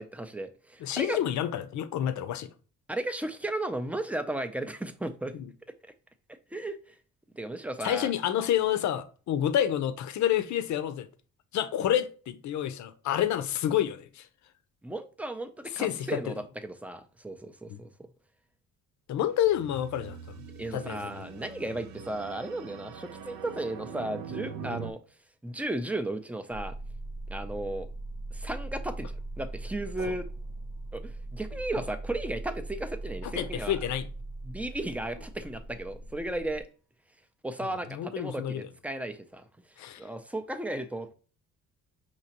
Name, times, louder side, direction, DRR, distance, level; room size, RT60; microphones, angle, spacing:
voice 1, 0.0-1.2 2.9-5.3 6.3-7.0 7.3-8.1 14.8-17.9 20.6-25.0 25.4-26.7 27.3-27.9 28.3-30.3 30.9-33.8 34.4-36.7 37.4-41.1, right 1 dB, 5° right, 0.4 m, -35 dB
voice 2, 0.8-2.5 5.4-5.5 7.8-11.1 11.5-14.3 15.7-16.3 17.7-17.8 19.1-20.4 20.7-21.2 33.2-34.1 37.9-38.7 39.8-40.0, left 11 dB, 70° left, 0.6 m, -29 dB
sound 1, 19.3-24.9, right 7 dB, 65° right, 0.6 m, -43 dB
sound 2, 26.5-36.6, right 2 dB, 85° right, 1.5 m, -40 dB
5.4 x 2.9 x 2.9 m
cardioid pair, 90°, 30 cm